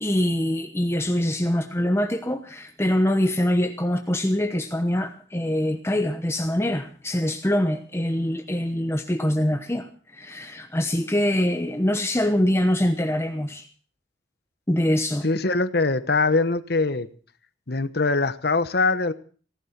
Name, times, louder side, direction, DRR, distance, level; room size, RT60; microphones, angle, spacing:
voice 1, 0.0-13.7 14.7-15.3, left 1 dB, 15° left, 6 dB, 1.0 m, -24 dB
voice 2, 15.2-17.1 17.7-19.1, left 3 dB, 60° left, 13 dB, 1.1 m, -22 dB
18.0 x 12.0 x 5.9 m, 0.43 s
head